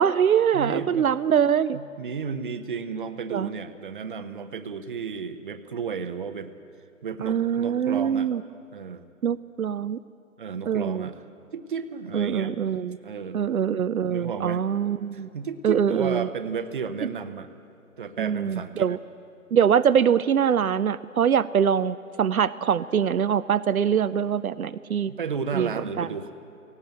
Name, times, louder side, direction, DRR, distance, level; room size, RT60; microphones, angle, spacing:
voice 1, 0.0-1.8 3.3-3.5 7.2-8.4 9.2-10.0 10.7-11.1 12.1-13.0 13.3-15.3 15.6-16.3 18.2-19.0 19.5-25.1 25.5-25.7 26.0-26.1, right 8 dB, 80° right, 13 dB, 0.6 m, -23 dB
voice 2, 0.5-1.1 1.7-6.5 7.0-8.3 8.7-9.0 10.4-11.2 11.5-12.6 13.0-13.4 14.1-14.6 15.1-17.5 18.0-18.9 25.1-26.3, right 6 dB, 35° right, 10 dB, 0.9 m, -33 dB
18.0 x 17.5 x 8.1 m, 2.5 s
figure-of-eight pair, 160°, 42 cm